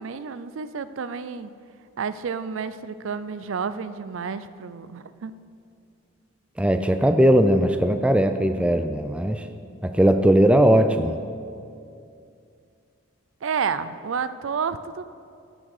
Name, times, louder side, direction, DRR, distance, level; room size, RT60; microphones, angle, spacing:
voice 1, 0.0-1.5 2.0-5.4 13.4-15.0, right 6 dB, 75° right, 14 dB, 0.4 m, -30 dB
voice 2, 6.6-9.5 9.8-11.2, equal, 5° right, 8 dB, 0.3 m, -19 dB
11.5 x 6.1 x 6.5 m, 2.4 s
head